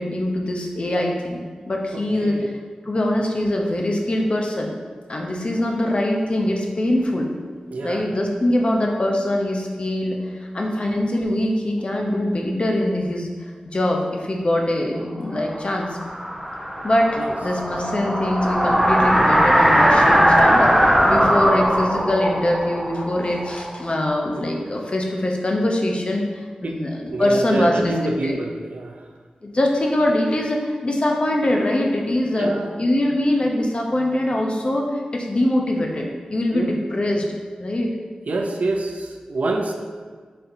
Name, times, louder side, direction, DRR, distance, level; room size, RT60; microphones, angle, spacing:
voice 1, 0.0-2.5 2.8-4.7 5.1-7.3 7.8-16.0 16.8-28.0 28.2-28.4 29.4-32.5 32.8-37.2 37.6-37.9, left 1 dB, 45° left, 0 dB, 0.6 m, -23 dB
voice 2, 1.9-2.5 7.7-8.0 17.2-17.3 26.6-26.8 27.1-29.0 32.4-32.7 36.5-36.7 38.3-39.7, right 2 dB, 70° right, 3 dB, 0.5 m, -26 dB
sound 1, 15.5-24.2, equal, 5° right, 0.7 m, -19 dB
4.3 x 3.7 x 2.6 m, 1.5 s
cardioid pair, 45°, 3 cm